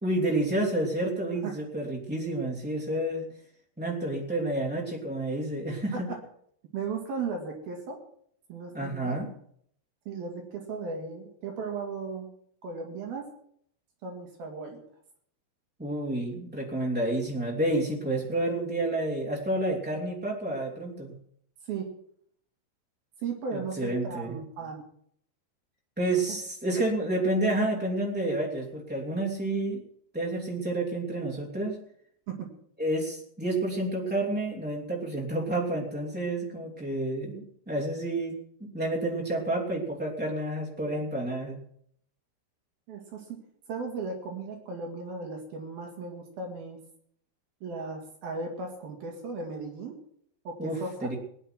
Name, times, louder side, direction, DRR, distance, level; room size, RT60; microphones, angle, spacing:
voice 1, 0.0-3.2 3.8-6.1 8.7-9.3 15.8-21.1 23.5-24.4 26.0-29.8 30.1-31.8 32.8-38.3 38.6-41.6 50.6-51.1, right 1 dB, 5° right, -3 dB, 0.8 m, -29 dB
voice 2, 6.7-8.0 8.5-9.2 10.1-12.3 12.6-13.3 14.0-14.8 21.7-21.9 23.2-24.8 32.3-32.5 42.9-43.4 43.7-46.8 47.6-50.0 50.5-51.1, right 4 dB, 55° right, 1 dB, 3.6 m, -36 dB
19.0 x 10.0 x 6.0 m, 0.66 s
omnidirectional pair, 5.9 m